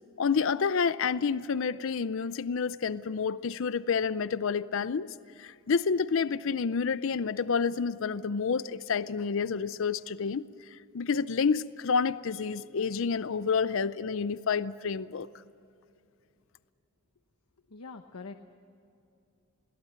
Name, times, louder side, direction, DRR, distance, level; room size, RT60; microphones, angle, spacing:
voice 1, 0.2-5.1 5.4-10.5 10.9-15.3, left 5 dB, 60° left, 16 dB, 0.5 m, -29 dB
voice 2, 17.7-18.4, left 4 dB, 90° left, 6 dB, 1.0 m, -43 dB
22.5 x 17.0 x 8.7 m, 2.6 s
head